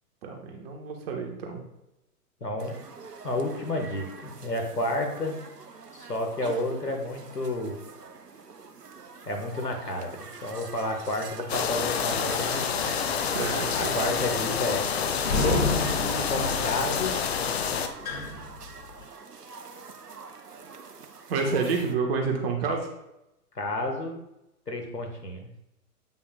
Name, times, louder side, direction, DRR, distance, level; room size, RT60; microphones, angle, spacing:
voice 1, 0.2-1.6 13.3-14.0 21.3-22.9, right 4 dB, 40° right, 1 dB, 1.3 m, -29 dB
voice 2, 2.4-2.7 3.2-5.4 5.9-7.8 9.3-12.9 13.8-14.9 15.2-17.1 23.5-24.2 24.7-25.5, left 2 dB, 85° left, 3 dB, 1.5 m, -31 dB
sound 1, 2.6-21.9, right 5 dB, 85° right, 0.7 m, -44 dB
sound 2, 11.5-17.9, left 7 dB, 45° left, 0.6 m, -28 dB
sound 3, 15.2-19.0, left 3 dB, 65° left, 1.8 m, -31 dB
8.3 x 5.6 x 2.2 m, 0.89 s
figure-of-eight pair, 115°, 46 cm